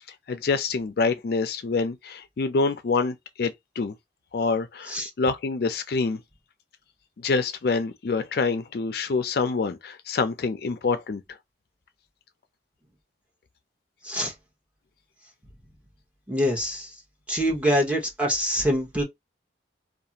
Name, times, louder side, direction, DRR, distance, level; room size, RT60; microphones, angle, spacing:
voice 1, 0.3-3.9 4.3-6.2 7.2-11.2, left 4 dB, 60° left, 0.4 m, -26 dB
voice 2, 16.3-16.9 17.3-19.0, equal, 5° right, 0.8 m, -25 dB
2.4 x 2.4 x 2.8 m
head